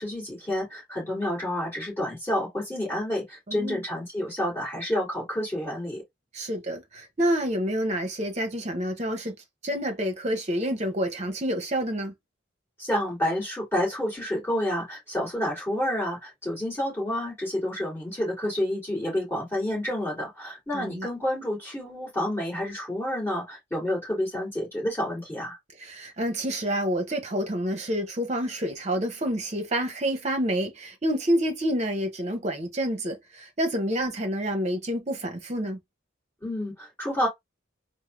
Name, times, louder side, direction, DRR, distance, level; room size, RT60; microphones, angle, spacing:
voice 1, 0.0-6.0 12.8-25.6 36.4-37.3, left 1 dB, 10° left, 2.1 m, -29 dB
voice 2, 3.5-3.8 6.3-9.3 9.6-12.1 20.7-21.1 25.8-35.8, equal, 35° right, 0.8 m, -28 dB
3.6 x 2.1 x 3.1 m
head